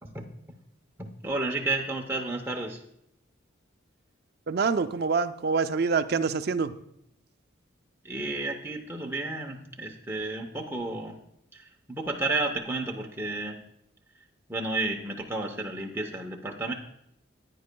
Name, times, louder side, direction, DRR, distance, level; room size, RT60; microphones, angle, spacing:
voice 1, 1.0-2.8 8.0-11.1 11.5-13.6 14.5-16.7, right 2 dB, 10° right, 0 dB, 0.7 m, -32 dB
voice 2, 4.5-6.7, right 5 dB, 50° right, 10 dB, 0.4 m, -26 dB
15.0 x 9.2 x 2.2 m, 0.75 s
head